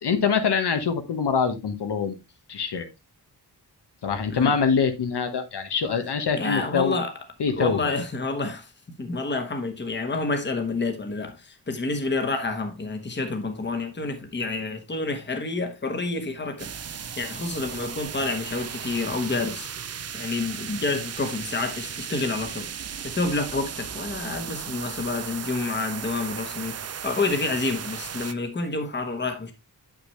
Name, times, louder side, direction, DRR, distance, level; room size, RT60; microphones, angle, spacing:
voice 1, 0.0-2.2 2.5-2.9 4.0-6.9 7.4-7.8, left 6 dB, 75° left, 1.2 m, -24 dB
voice 2, 6.4-7.2 7.6-8.7 9.0-29.5, left 3 dB, 25° left, 1.1 m, -29 dB
sound 1, 16.6-28.3, right 8 dB, 40° right, 0.4 m, -36 dB
8.3 x 5.9 x 3.1 m
wide cardioid pair, 180°, 40 cm